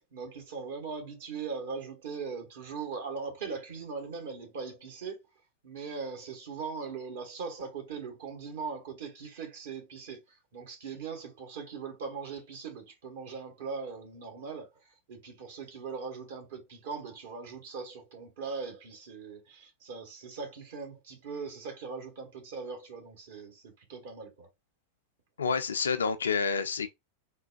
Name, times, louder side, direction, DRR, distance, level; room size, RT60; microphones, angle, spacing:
voice 1, 0.0-5.2 5.6-24.5, right 5 dB, 55° right, 1.2 m, -40 dB
voice 2, 25.4-26.9, left 5 dB, 70° left, 0.4 m, -28 dB
3.8 x 2.2 x 2.5 m
figure-of-eight pair, 90°, 0 cm